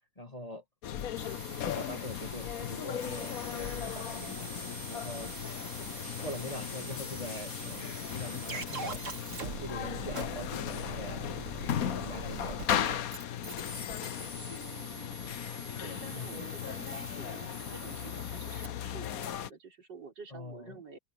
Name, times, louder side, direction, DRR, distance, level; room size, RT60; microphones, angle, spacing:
voice 1, 0.2-0.6 1.6-5.3 6.2-11.2 11.8-13.4 16.1-16.4 20.3-20.8, left 1 dB, 20° left, 2.0 m, -44 dB
sound 1, 0.8-19.5, left 10 dB, 60° left, 1.2 m, -37 dB
sound 2, 1.2-18.7, right 4 dB, 45° right, 2.2 m, -44 dB
voice 2, 14.3-15.2 15.8-21.0, right 5 dB, 70° right, 4.7 m, -49 dB
open air
omnidirectional pair, 2.0 m